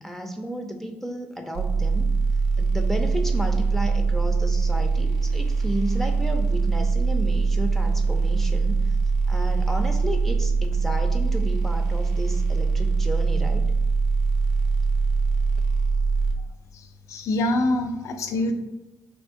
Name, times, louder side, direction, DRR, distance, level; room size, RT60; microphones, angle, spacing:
voice 1, 0.0-2.1 2.6-9.0 9.3-13.7, equal, 5° left, 3 dB, 0.6 m, -32 dB
sound 1, 1.5-16.3, right 4 dB, 85° right, 0.4 m, -22 dB
voice 2, 16.7-18.5, left 1 dB, 60° left, 7 dB, 0.5 m, -25 dB
3.6 x 3.2 x 2.5 m, 1.0 s
hypercardioid pair, 55°, 6 cm